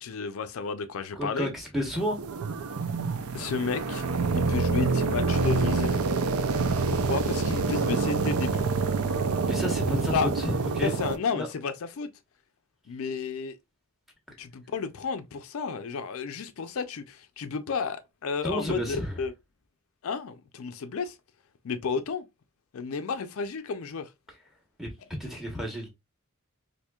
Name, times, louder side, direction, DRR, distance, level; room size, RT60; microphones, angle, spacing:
voice 1, 0.0-1.5 3.3-4.0 4.3-6.0 6.9-8.6 10.1-10.3 10.8-12.1 12.9-13.6 14.4-19.3 20.0-21.2 21.6-22.2 22.7-24.1, left 5 dB, 70° left, 0.4 m, -32 dB
voice 2, 1.2-2.2 9.5-10.9 11.3-11.5 18.4-19.1 24.8-24.9 25.2-25.9, equal, ahead, 0.9 m, -31 dB
sound 1, 1.9-11.2, right 4 dB, 80° right, 0.5 m, -27 dB
4.3 x 2.6 x 2.2 m
head